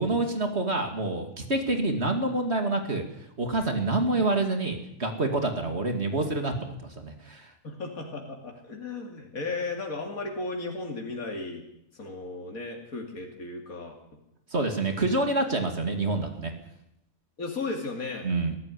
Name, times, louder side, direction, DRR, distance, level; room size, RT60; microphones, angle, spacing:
voice 1, 0.0-3.0 3.4-7.5 14.5-16.5 18.2-18.6, right 2 dB, 50° right, 5 dB, 2.8 m, -27 dB
voice 2, 7.6-11.7 11.9-14.0 17.4-18.3, left 3 dB, 90° left, 2 dB, 3.0 m, -35 dB
22.0 x 14.0 x 9.9 m, 0.81 s
omnidirectional pair, 1.5 m